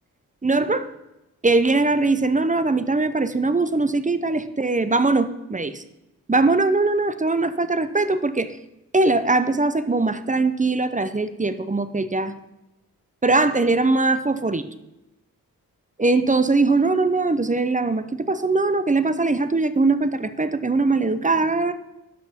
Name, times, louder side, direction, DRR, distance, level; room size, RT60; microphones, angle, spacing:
voice 1, 0.4-0.9 1.4-5.8 6.3-8.5 8.9-12.3 13.2-14.7 16.0-21.7, right 3 dB, 20° right, 12 dB, 0.7 m, -21 dB
11.5 x 5.9 x 4.4 m, 0.95 s
cardioid pair, 50°, 36 cm